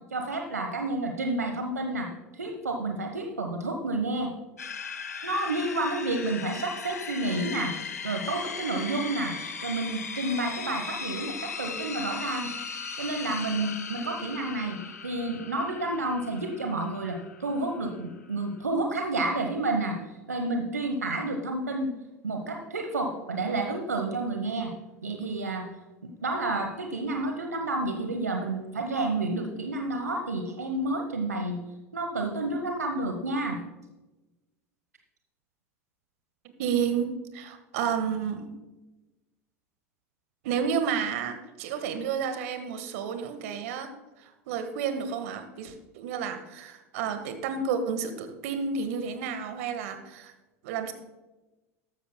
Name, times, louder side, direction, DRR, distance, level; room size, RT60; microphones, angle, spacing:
voice 1, 0.1-4.3 5.2-7.8 8.0-12.5 13.0-21.9 22.2-24.7 25.0-25.7 26.0-31.6 31.9-33.6, right 2 dB, 90° right, 4 dB, 1.1 m, -30 dB
sound 1, 4.6-18.6, left 5 dB, 85° left, 0.9 m, -38 dB
voice 2, 36.6-38.5 40.4-43.9 44.5-50.3 50.6-50.9, right 6 dB, 65° right, 8 dB, 1.5 m, -31 dB
13.5 x 13.0 x 2.2 m, 1.1 s
hypercardioid pair, 80°, 8 cm